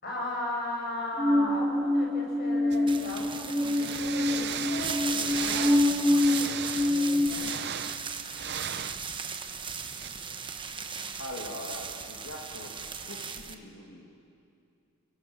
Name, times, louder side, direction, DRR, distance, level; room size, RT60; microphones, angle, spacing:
voice 1, 0.0-7.5, left 1 dB, 50° left, -1 dB, 6.4 m, -37 dB
sound 1, 1.2-7.3, left 1 dB, 5° left, 2.6 m, -26 dB
sound 2, 2.7-2.8 3.7-9.0 10.0-10.1, right 9 dB, 50° right, 0.7 m, -37 dB
sound 3, 2.9-13.5, right 6 dB, 25° right, 1.1 m, -37 dB
voice 2, 11.2-12.7 13.1-14.1, left 1 dB, 65° left, -2 dB, 2.7 m, -42 dB
30.0 x 18.0 x 7.3 m, 2.6 s
head